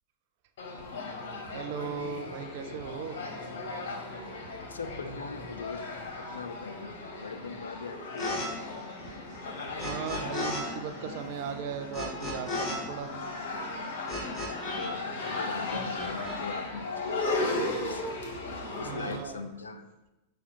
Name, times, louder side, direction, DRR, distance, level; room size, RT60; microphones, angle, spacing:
sound 1, 0.6-19.2, left 2 dB, 55° left, 0.8 m, -37 dB
voice 1, 1.5-3.2 9.0-9.1 9.8-13.1 18.8-19.5, right 7 dB, 50° right, 7 dB, 0.4 m, -37 dB
voice 2, 4.7-8.4 14.7-18.0 18.8-19.9, left 4 dB, 70° left, 8 dB, 0.3 m, -41 dB
sound 2, 8.2-8.5 8.7-10.6 10.9-14.9 15.2-16.4, left 2 dB, 25° left, 1.1 m, -36 dB
5.6 x 2.2 x 4.2 m, 1.0 s
figure-of-eight pair, 90°, 0 cm